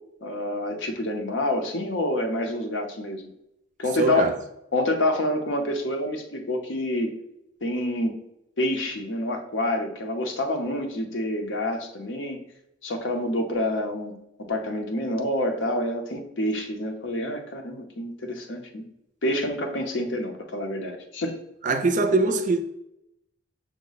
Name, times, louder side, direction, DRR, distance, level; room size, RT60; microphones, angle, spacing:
voice 1, 0.2-3.3 3.8-4.3 4.7-7.1 7.6-8.2 8.6-12.4 12.8-14.1 14.5-18.8 19.2-21.4, left 1 dB, 65° left, 0.7 m, -27 dB
voice 2, 4.0-4.4 21.6-22.6, right 3 dB, 40° right, 0.4 m, -22 dB
6.0 x 2.1 x 4.0 m
head